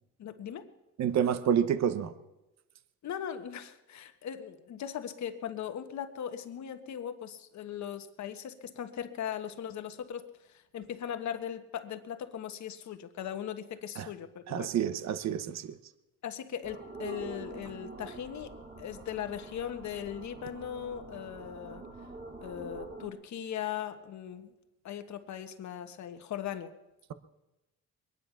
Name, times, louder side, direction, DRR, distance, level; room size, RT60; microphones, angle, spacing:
voice 1, 0.2-0.7 3.0-14.7 16.2-21.9 22.4-24.5 24.8-26.7, left 9 dB, 65° left, 8 dB, 1.4 m, -39 dB
voice 2, 1.0-2.1 14.0-14.1 14.5-15.7, right 9 dB, 60° right, 13 dB, 1.0 m, -28 dB
sound 1, 16.6-23.1, right 3 dB, 30° right, 3.5 m, -46 dB
22.5 x 10.0 x 5.8 m, 0.99 s
cardioid pair, 90°, 30 cm